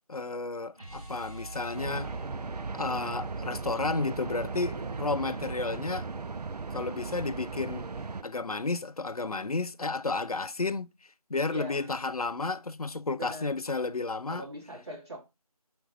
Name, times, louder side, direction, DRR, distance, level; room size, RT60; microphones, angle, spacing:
voice 1, 0.1-2.1 2.7-6.1 6.7-7.9 8.2-10.9 11.3-14.4, left 3 dB, 70° left, 0.5 m, -32 dB
sound 1, 0.7-6.8, right 2 dB, 65° right, 3.3 m, -45 dB
sound 2, 1.7-8.2, right 4 dB, 90° right, 0.4 m, -37 dB
voice 2, 4.7-5.0 11.5-11.9 13.1-13.5 14.3-15.2, right 1 dB, 45° right, 2.4 m, -42 dB
5.1 x 4.3 x 5.1 m
figure-of-eight pair, 170°, 20 cm